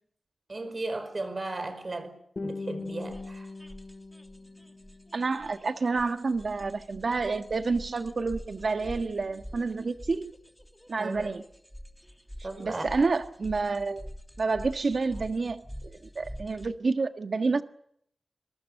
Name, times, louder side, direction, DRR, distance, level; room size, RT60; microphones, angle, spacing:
voice 1, 0.5-3.5 11.0-11.3 12.4-12.9, right 2 dB, 40° right, 5.2 m, -36 dB
Guitar, 2.4-5.4, left 3 dB, 45° left, 4.1 m, -40 dB
sound 1, 2.9-16.7, equal, ahead, 2.9 m, -46 dB
voice 2, 5.1-10.3 10.9-11.4 12.6-14.1 14.4-17.6, right 4 dB, 60° right, 1.6 m, -29 dB
26.0 x 23.5 x 6.6 m
wide cardioid pair, 105°, 0 cm